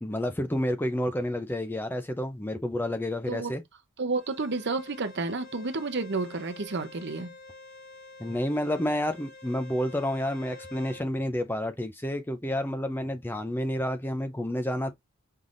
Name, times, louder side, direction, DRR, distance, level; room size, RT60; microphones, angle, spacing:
voice 1, 0.0-3.6 8.2-14.9, left 1 dB, 10° left, 0.5 m, -30 dB
voice 2, 4.0-7.3, right 3 dB, 50° right, 0.8 m, -31 dB
Bowed string instrument, 4.1-11.1, left 2 dB, 80° left, 3.0 m, -48 dB
5.6 x 3.3 x 2.5 m
head